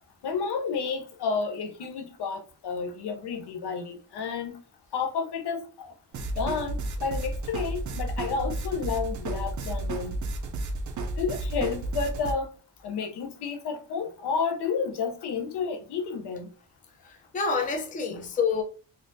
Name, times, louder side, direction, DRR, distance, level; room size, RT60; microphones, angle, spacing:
voice 1, 0.2-4.5 4.9-5.9 6.4-10.1 11.2-12.5 12.8-16.5 18.1-18.2, left 5 dB, 75° left, 0.8 m, -31 dB
sound 1, 6.1-12.3, right 2 dB, 50° right, 0.5 m, -32 dB
voice 2, 17.0-18.6, left 5 dB, 20° left, 0.4 m, -28 dB
4.0 x 2.5 x 2.6 m
wide cardioid pair, 175°, 40 cm